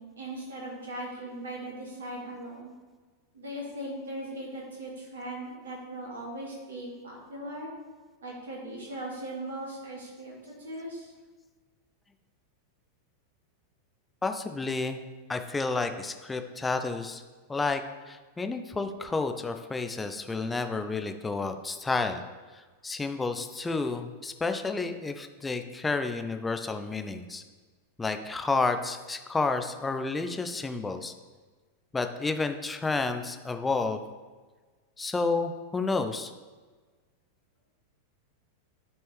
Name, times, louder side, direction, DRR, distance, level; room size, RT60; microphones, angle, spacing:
voice 1, 0.0-2.7 3.3-7.7 8.2-11.1, right 1 dB, 65° right, -3 dB, 2.4 m, -39 dB
voice 2, 14.2-15.0 15.3-17.2 17.5-17.8 18.1-22.2 22.8-27.4 28.0-31.1 31.9-34.0 35.0-36.3, left 3 dB, 10° left, 7 dB, 0.5 m, -30 dB
11.5 x 4.4 x 3.4 m, 1.4 s
figure-of-eight pair, 90°, 0 cm